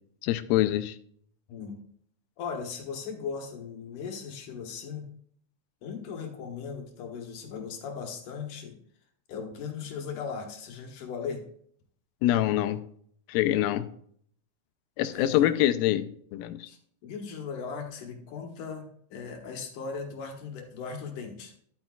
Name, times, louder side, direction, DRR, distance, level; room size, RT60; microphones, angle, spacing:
voice 1, 0.2-1.0 12.2-12.8 13.3-13.9 15.0-16.7, left 13 dB, 85° left, 12 dB, 2.4 m, -25 dB
voice 2, 2.4-5.1 5.8-8.8 9.3-11.4 15.0-15.5 16.7-21.5, left 6 dB, 65° left, 3 dB, 2.7 m, -38 dB
11.5 x 8.8 x 2.4 m, 0.62 s
omnidirectional pair, 4.1 m